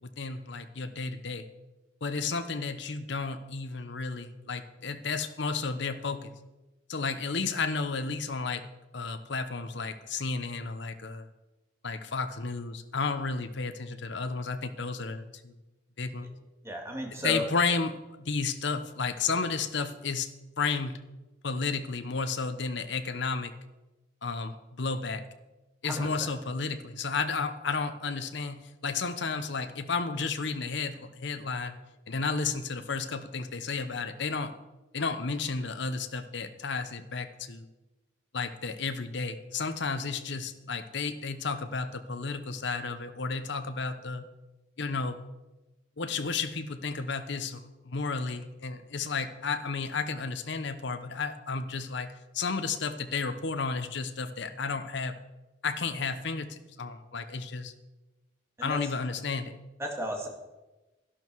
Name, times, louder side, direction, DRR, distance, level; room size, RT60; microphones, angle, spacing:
voice 1, 0.0-1.5 2.0-6.3 6.9-8.6 8.9-11.3 11.8-15.5 16.0-16.3 17.2-20.3 20.6-21.0 21.4-23.5 24.2-25.3 25.8-31.8 32.1-34.5 34.9-37.7 38.3-44.2 44.8-45.2 46.0-55.1 55.6-57.7 58.6-59.6, left 4 dB, 65° left, 9 dB, 0.9 m, -32 dB
voice 2, 16.6-17.4 25.8-26.3 58.6-58.8 59.8-60.3, left 1 dB, 15° right, 1 dB, 2.0 m, -34 dB
12.5 x 11.5 x 4.7 m, 1.1 s
head